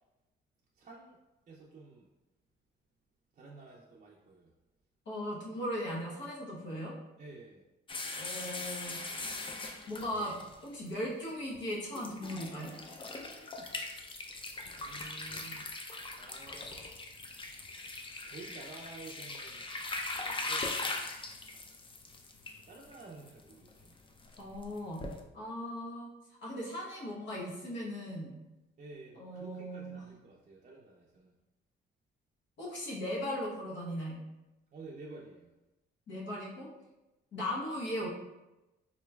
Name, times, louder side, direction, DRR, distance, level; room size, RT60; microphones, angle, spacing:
voice 1, 0.8-1.2 1.5-2.1 3.4-4.5 7.2-7.6 13.7-14.3 14.8-15.7 16.2-16.8 18.2-19.6 20.2-20.7 22.4-23.9 28.8-31.3 34.7-35.5, right 3 dB, 40° right, -3 dB, 0.5 m, -51 dB
voice 2, 5.1-6.9 8.2-9.0 9.9-12.8 24.4-25.0 25.3-26.1 26.4-28.4 29.1-30.0 32.6-34.1 36.1-36.7 37.3-38.1, equal, 65° left, -5 dB, 1.0 m, -38 dB
sound 1, 7.9-10.9 11.5-11.6 11.9-25.2, left 2 dB, 25° left, 0.4 m, -41 dB
3.8 x 3.0 x 2.3 m, 1.0 s
cardioid pair, 90°, 20 cm